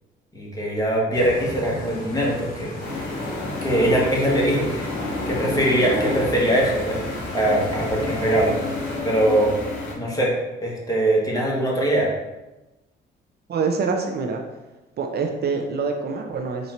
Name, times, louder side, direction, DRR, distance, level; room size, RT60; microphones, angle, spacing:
voice 1, 0.3-2.7 3.6-4.9 5.3-7.0 7.3-8.6 9.0-9.5 10.0-10.3 10.6-12.1, right 1 dB, 15° left, -4 dB, 1.4 m, -21 dB
Stream, 1.1-9.0, left 1 dB, 50° left, 1.3 m, -35 dB
sound 1, 2.8-9.9, left 2 dB, 65° left, 1.3 m, -30 dB
voice 2, 13.5-14.4 15.0-16.7, right 4 dB, 55° right, 3 dB, 0.5 m, -25 dB
4.1 x 2.6 x 4.4 m, 1.1 s
cardioid pair, 90°, 20 cm